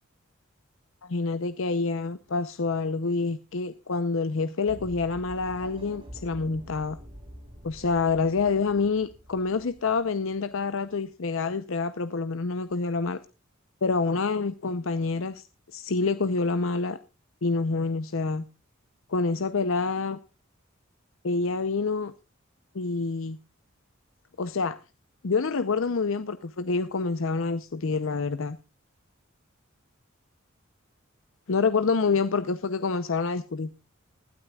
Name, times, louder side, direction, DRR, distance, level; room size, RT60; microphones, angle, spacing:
voice 1, 1.0-7.0 7.6-13.2 13.8-15.4 15.7-17.0 17.4-18.4 19.1-20.2 21.2-22.1 22.7-23.4 24.4-24.8 25.2-28.6 31.5-33.7, left 4 dB, 65° left, 0.7 m, -27 dB
sound 1, 4.7-10.6, equal, 25° right, 4.8 m, -47 dB
20.0 x 12.5 x 2.3 m
head